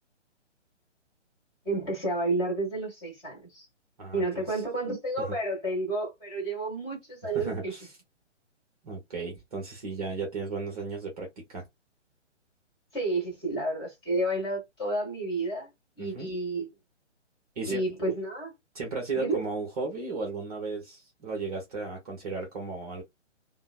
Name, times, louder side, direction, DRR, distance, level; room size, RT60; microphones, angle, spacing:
voice 1, 1.6-3.7 4.1-7.8 12.9-15.7 16.0-16.7 17.6-18.5 19.1-19.4, right 2 dB, 10° left, 1.3 m, -30 dB
voice 2, 4.0-4.6 5.2-5.4 7.3-7.9 8.8-11.6 16.0-16.3 17.6-17.8 18.7-23.0, right 3 dB, 30° right, 0.9 m, -35 dB
3.0 x 2.0 x 2.3 m
figure-of-eight pair, 135°, 36 cm